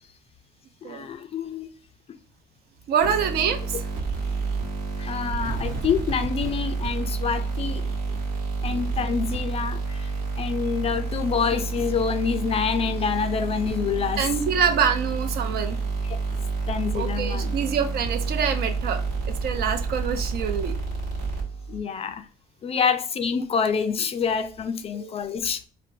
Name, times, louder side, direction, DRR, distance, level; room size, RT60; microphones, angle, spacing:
voice 1, 0.8-1.7 5.0-7.8 8.6-10.1 10.4-14.2 16.0-16.2 16.7-17.6 21.7-22.3 22.6-25.6, left 6 dB, 35° left, 0.4 m, -27 dB
voice 2, 2.9-3.8 14.2-15.8 16.9-19.0 19.3-20.7 24.9-25.1, right 7 dB, 70° right, 0.6 m, -25 dB
sound 1, 3.0-21.8, right 4 dB, 85° right, 1.1 m, -29 dB
4.2 x 2.0 x 2.6 m
cardioid pair, 110°, 17 cm